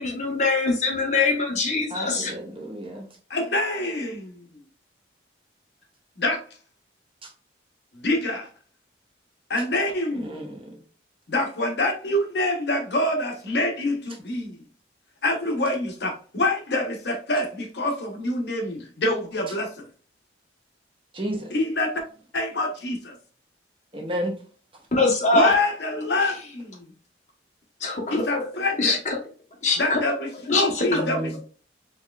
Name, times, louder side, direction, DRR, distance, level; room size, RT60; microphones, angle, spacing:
voice 1, 0.0-2.3 24.9-25.5 27.8-28.4 28.8-29.1 29.6-30.0 30.5-31.0, left 3 dB, 40° left, 1.0 m, -23 dB
voice 2, 1.9-3.1 7.2-7.3 10.1-10.8 21.1-21.5 23.9-24.3 30.9-31.4, equal, 30° right, 0.9 m, -32 dB
voice 3, 3.3-4.4 6.2-6.4 8.0-8.5 9.5-10.4 11.3-14.6 15.2-19.7 21.5-22.0 22.3-23.1 25.3-26.9 28.1-29.0 29.8-31.4, left 1 dB, 60° left, 0.9 m, -26 dB
4.5 x 3.1 x 2.3 m
head